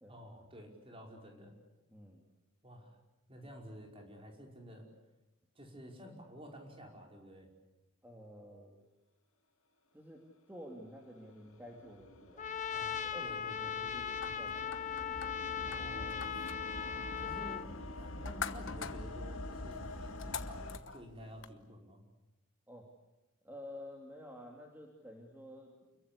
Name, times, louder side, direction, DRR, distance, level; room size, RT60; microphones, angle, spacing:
voice 1, 0.1-1.5 2.6-3.0 3.3-4.9 5.6-7.5 12.7-14.1 15.6-16.2 17.2-17.7 18.0-22.0, equal, 25° right, 1 dB, 5.2 m, -51 dB
voice 2, 1.9-2.2 8.0-8.8 9.9-10.2 10.5-12.5 13.0-13.4 13.6-14.8 22.7-22.9 23.4-25.7, equal, 10° right, 0 dB, 2.8 m, -51 dB
sound 1, 11.1-20.8, left 1 dB, 80° left, 2.3 m, -46 dB
Trumpet, 12.4-17.7, left 7 dB, 35° left, 0.9 m, -38 dB
sound 2, 14.2-21.5, left 6 dB, 60° left, 1.2 m, -47 dB
29.5 x 23.0 x 8.5 m, 1.0 s
head